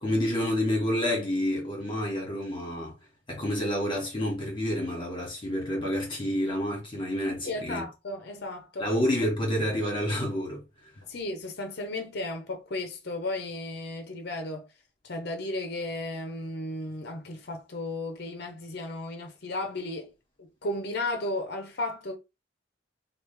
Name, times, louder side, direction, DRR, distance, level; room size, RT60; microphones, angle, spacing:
voice 1, 0.0-2.9 3.3-7.9 8.8-10.6, equal, 25° left, 1.5 m, -28 dB
voice 2, 7.4-8.8 11.1-14.7 15.0-20.1 20.4-22.2, left 2 dB, 55° left, 0.7 m, -34 dB
3.3 x 2.4 x 3.3 m
head